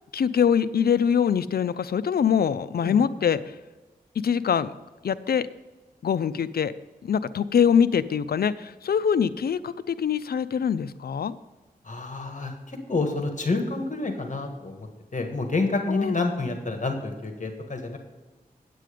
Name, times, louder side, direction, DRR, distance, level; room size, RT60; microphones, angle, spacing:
voice 1, 0.1-3.5 4.2-4.7 5.0-5.5 6.0-6.7 7.0-11.3 15.9-16.2, left 7 dB, 85° left, 15 dB, 0.5 m, -23 dB
voice 2, 11.8-14.9 15.1-18.0, left 3 dB, 55° left, 4 dB, 1.6 m, -28 dB
9.2 x 8.5 x 5.1 m, 1.2 s
wide cardioid pair, 60°, 16 cm